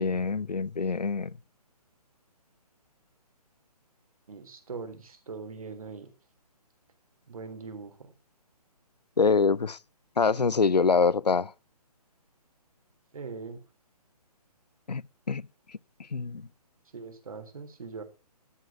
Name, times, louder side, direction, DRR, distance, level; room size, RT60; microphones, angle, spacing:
voice 1, 0.0-1.4 9.2-9.8 10.2-11.5 14.9-16.5, left 5 dB, 85° left, 0.6 m, -25 dB
voice 2, 4.3-6.1 7.3-7.9 13.1-13.6 16.9-18.0, right 4 dB, 60° right, 3.3 m, -41 dB
13.0 x 7.9 x 6.0 m
figure-of-eight pair, 140°, 20 cm